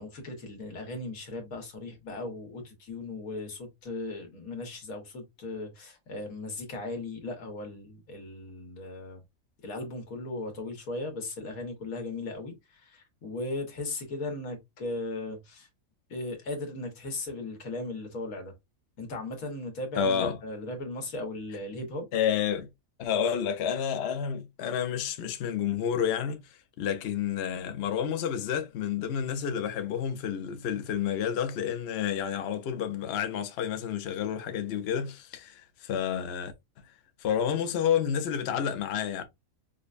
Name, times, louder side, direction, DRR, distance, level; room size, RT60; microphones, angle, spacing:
voice 1, 0.0-9.2 9.6-15.7 16.1-18.5 19.0-22.1, left 2 dB, 80° left, 1.6 m, -37 dB
voice 2, 20.0-20.4 22.1-22.7 23.0-26.4 26.8-36.5 37.2-39.2, left 8 dB, 60° left, 0.7 m, -30 dB
5.1 x 2.1 x 2.4 m
omnidirectional pair, 1.5 m